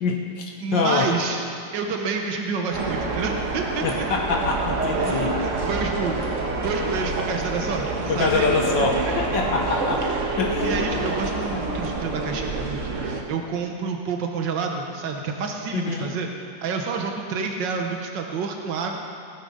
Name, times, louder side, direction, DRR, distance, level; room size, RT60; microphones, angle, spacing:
voice 1, 0.0-1.1 3.8-5.4 8.1-10.1 10.4-10.7 15.7-16.1, left 4 dB, 75° left, 0 dB, 1.9 m, -24 dB
voice 2, 0.6-1.4 1.7-4.1 5.0-6.2 6.6-8.5 8.8-9.1 10.6-16.3 16.6-19.0, right 5 dB, 75° right, 3 dB, 1.8 m, -29 dB
sound 1, 2.7-13.2, right 3 dB, 45° right, 1.4 m, -27 dB
17.0 x 10.0 x 5.5 m, 2.4 s
omnidirectional pair, 2.0 m